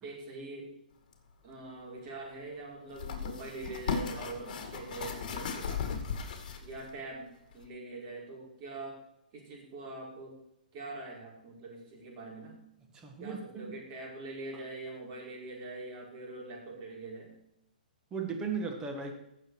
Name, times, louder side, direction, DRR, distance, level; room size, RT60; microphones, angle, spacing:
voice 1, 0.0-0.7 1.4-6.1 6.6-9.0 9.3-10.4 10.7-12.6 13.2-17.3, right 2 dB, 35° right, -2 dB, 4.8 m, -43 dB
sound 1, 1.1-1.2 2.9-6.9 7.5-7.6, left 6 dB, 55° left, 2.3 m, -36 dB
voice 2, 12.9-13.7 18.1-19.1, right 5 dB, 15° right, 3 dB, 1.7 m, -36 dB
16.5 x 6.8 x 4.8 m, 0.83 s
hypercardioid pair, 150°, 5 cm